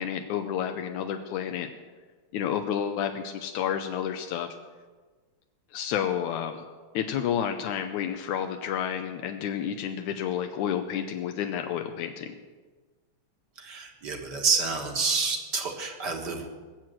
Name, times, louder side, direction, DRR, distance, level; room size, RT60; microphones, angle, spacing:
voice 1, 0.0-1.7 2.3-4.6 5.7-6.6 6.9-12.4, left 9 dB, 85° left, 6 dB, 2.2 m, -30 dB
voice 2, 13.6-16.5, right 4 dB, 40° right, 3 dB, 1.8 m, -28 dB
20.5 x 7.7 x 7.7 m, 1.4 s
omnidirectional pair, 3.4 m